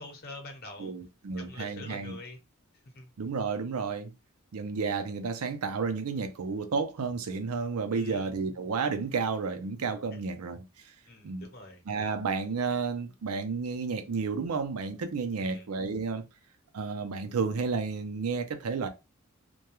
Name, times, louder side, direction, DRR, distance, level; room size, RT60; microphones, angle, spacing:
voice 1, 0.0-0.9 1.4-2.4 2.8-3.1 7.9-8.3 11.1-11.8 15.4-15.7, left 2 dB, 45° left, 0.8 m, -45 dB
voice 2, 0.8-2.2 3.2-4.1 4.5-10.6 11.2-11.5 11.9-16.2 16.7-18.9, right 4 dB, 90° right, 0.5 m, -31 dB
2.2 x 2.2 x 3.0 m
head